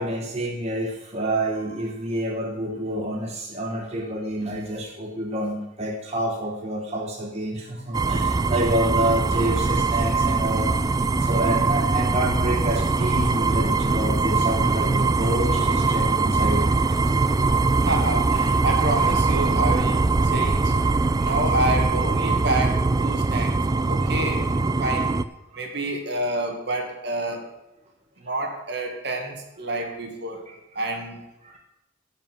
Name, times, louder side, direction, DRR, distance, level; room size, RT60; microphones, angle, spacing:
voice 1, 0.0-10.9 11.2-17.4 23.9-24.3 25.5-25.7 28.4-28.5 29.7-29.9 30.5-30.6 31.4-31.6, right 1 dB, 35° right, 0 dB, 1.1 m, -28 dB
sound 1, 7.9-25.2, right 3 dB, 20° right, 0.3 m, -22 dB
voice 2, 17.8-20.7 21.2-23.6 23.9-24.5 24.8-25.1 25.5-27.5 28.2-30.4 30.8-31.2, right 1 dB, 60° right, 3 dB, 2.0 m, -28 dB
12.0 x 5.4 x 7.4 m, 0.97 s
head